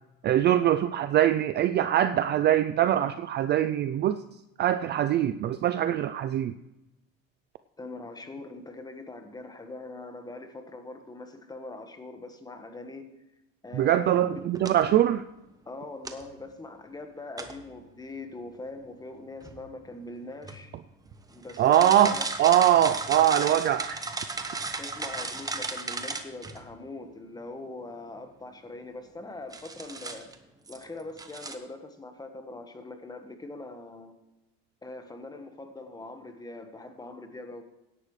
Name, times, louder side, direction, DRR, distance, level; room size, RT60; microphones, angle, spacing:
voice 1, 0.2-4.2 4.6-6.5 13.7-15.2 21.6-24.0 24.6-24.8, right 11 dB, 35° right, 11 dB, 0.4 m, -23 dB
voice 2, 7.8-13.1 13.6-14.4 15.7-20.7 21.3-22.2 24.8-30.3 30.7-34.2 34.8-37.6, left 2 dB, 10° left, 7 dB, 1.4 m, -42 dB
sound 1, 14.5-14.9 16.0-16.3 17.4-17.7 19.4-19.9 20.4-20.6 21.1-26.6 29.5-30.3 30.7-30.8 31.2-31.5, right 3 dB, 10° right, 1.0 m, -35 dB
17.0 x 11.0 x 3.2 m, 0.95 s
cardioid pair, 130°, 30 cm